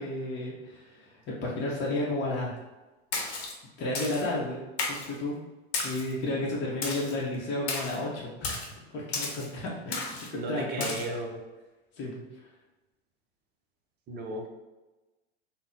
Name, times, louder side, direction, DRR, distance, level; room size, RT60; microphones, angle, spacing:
voice 1, 0.0-2.5 3.8-4.6 4.9-5.4 5.8-11.2 12.0-12.2, left 2 dB, 35° left, -5 dB, 0.8 m, -32 dB
Splash splatter, 3.1-3.5 3.9-4.3 4.8-5.1 5.7-6.1 6.8-7.1 7.7-8.0 8.4-8.7 9.1-9.5 9.9-10.3 10.8-11.0, left 3 dB, 80° left, 0.8 m, -33 dB
voice 2, 10.3-11.4 14.1-14.5, right 1 dB, 30° right, 1 dB, 0.6 m, -35 dB
3.6 x 2.0 x 2.6 m, 1.1 s
hypercardioid pair, 95°, 32 cm